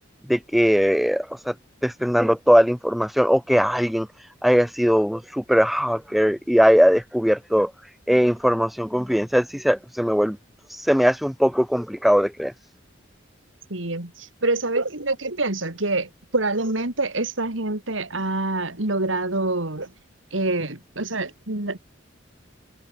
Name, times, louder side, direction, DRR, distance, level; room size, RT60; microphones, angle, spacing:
voice 1, 0.3-1.5 1.8-4.1 4.4-7.7 8.1-10.4 10.7-12.5, equal, ahead, 0.4 m, -20 dB
voice 2, 13.7-19.9 20.3-21.8, right 2 dB, 80° right, 3.3 m, -26 dB
head